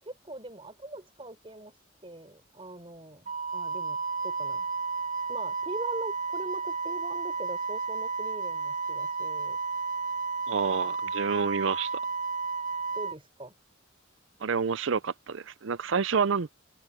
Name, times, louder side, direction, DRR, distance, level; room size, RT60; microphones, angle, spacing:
voice 1, 0.0-4.7 5.3-9.6 12.9-13.5, right 2 dB, 25° right, 4.4 m, -42 dB
Wind instrument woodwind instrument, 3.3-13.2, right 4 dB, 45° right, 1.4 m, -32 dB
voice 2, 10.5-11.9 14.4-16.5, right 5 dB, 70° right, 0.6 m, -28 dB
head